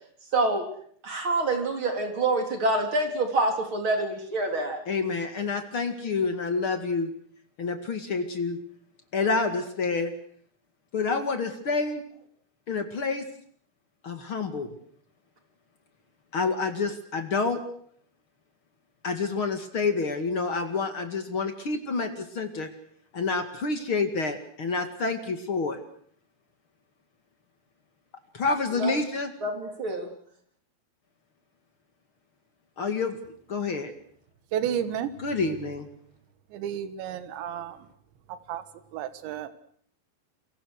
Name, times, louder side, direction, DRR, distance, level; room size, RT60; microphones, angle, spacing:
voice 1, 0.3-0.6 1.0-4.8 28.7-28.9 29.4-30.1, right 2 dB, 30° right, 5 dB, 3.8 m, -26 dB
voice 2, 4.9-7.1 7.6-8.6 9.1-10.1 10.9-12.0 12.7-13.2 14.0-14.7 16.3-17.6 19.0-22.7 23.1-25.8 28.3-29.3 32.8-33.2 33.5-33.9 35.2-35.9, left 4 dB, 45° left, 7 dB, 1.8 m, -28 dB
voice 3, 34.5-35.1 36.5-37.8 38.5-38.6 38.9-39.5, right 9 dB, 80° right, 12 dB, 3.8 m, -31 dB
29.5 x 22.5 x 6.5 m, 0.62 s
omnidirectional pair, 5.2 m